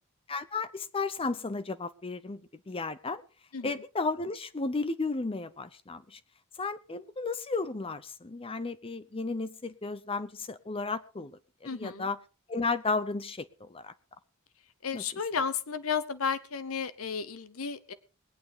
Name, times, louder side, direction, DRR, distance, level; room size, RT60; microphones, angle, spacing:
voice 1, 0.3-2.4 2.7-3.2 3.6-6.2 6.6-11.3 11.7-12.2 12.5-13.9 14.9-15.0, left 3 dB, 25° left, 13 dB, 0.7 m, -33 dB
voice 2, 11.6-12.1 14.8-17.9, left 6 dB, 75° left, 13 dB, 0.9 m, -33 dB
20.5 x 8.9 x 5.1 m, 0.36 s
head